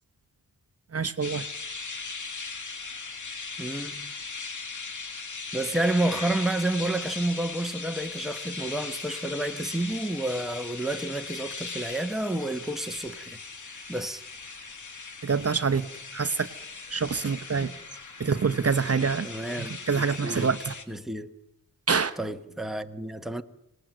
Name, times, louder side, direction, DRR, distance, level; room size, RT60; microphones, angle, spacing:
voice 1, 0.9-1.4 15.2-15.9 16.1-16.5 16.9-17.7 18.2-19.3 19.6-20.7 21.9-22.2, right 5 dB, 40° right, 0.9 m, -26 dB
sound 1, 1.2-20.8, left 4 dB, 55° left, 2.2 m, -39 dB
voice 2, 3.6-4.1 5.5-14.2 17.5-17.8 19.2-20.5 20.9-21.4 22.2-23.4, right 1 dB, ahead, 1.0 m, -30 dB
26.0 x 19.5 x 9.1 m
wide cardioid pair, 145°, 36 cm